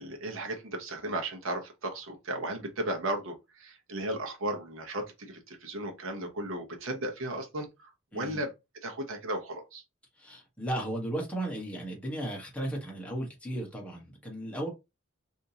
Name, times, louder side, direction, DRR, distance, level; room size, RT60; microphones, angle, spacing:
voice 1, 0.0-8.5 8.8-9.8, right 1 dB, 70° right, 0.9 m, -35 dB
voice 2, 8.1-8.4 10.2-14.7, right 1 dB, 5° left, 1.2 m, -35 dB
3.6 x 2.7 x 2.8 m
head